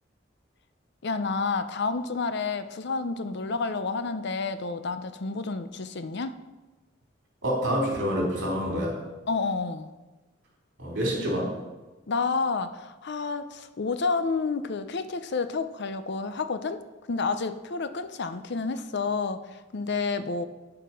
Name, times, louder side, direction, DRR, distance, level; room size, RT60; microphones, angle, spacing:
voice 1, 1.0-6.4 9.3-9.9 12.1-16.8 17.1-20.5, left 4 dB, 60° left, 11 dB, 0.6 m, -30 dB
voice 2, 7.4-9.0 10.8-11.5, equal, 70° right, -2 dB, 4.0 m, -27 dB
9.5 x 6.8 x 6.3 m, 1.1 s
head